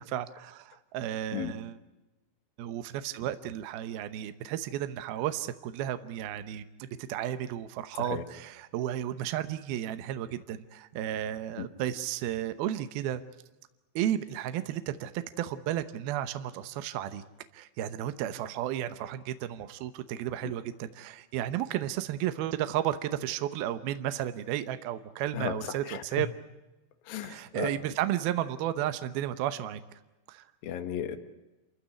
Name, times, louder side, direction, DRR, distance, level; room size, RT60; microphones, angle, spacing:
voice 1, 0.0-1.8 2.6-13.2 14.0-17.2 17.5-26.3 27.2-29.8 30.3-30.4, right 12 dB, 75° right, 11 dB, 2.4 m, -33 dB
voice 2, 27.1-27.7 30.6-31.2, left 9 dB, 60° left, 7 dB, 3.0 m, -34 dB
28.5 x 15.0 x 9.9 m, 1.0 s
omnidirectional pair, 5.4 m